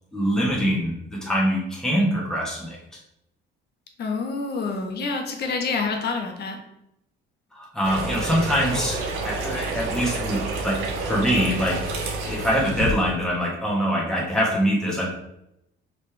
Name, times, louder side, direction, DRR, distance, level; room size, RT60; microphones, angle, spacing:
voice 1, 0.1-2.8 7.5-10.8 11.1-15.1, equal, 5° left, -5 dB, 1.5 m, -24 dB
voice 2, 4.0-6.6, left 4 dB, 55° left, 2 dB, 1.4 m, -27 dB
sound 1, 7.8-12.9, right 3 dB, 85° right, 1.5 m, -29 dB
5.4 x 5.3 x 3.4 m, 0.82 s
cardioid pair, 125°, 20 cm